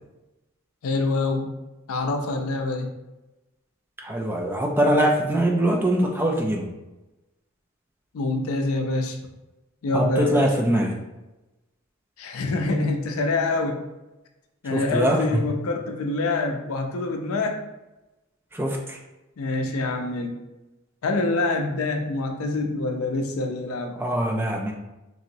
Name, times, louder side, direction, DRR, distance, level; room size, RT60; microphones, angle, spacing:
voice 1, 0.8-1.5 1.9-2.9 8.1-9.2 9.8-10.5 12.2-13.8 14.6-17.6 19.4-20.4 21.0-24.0, left 3 dB, 90° left, 4 dB, 0.4 m, -26 dB
voice 2, 4.0-6.7 9.9-11.0 14.7-15.4 18.5-19.0 24.0-24.7, right 1 dB, 10° right, 0 dB, 0.3 m, -23 dB
3.0 x 2.8 x 2.6 m, 1.0 s
head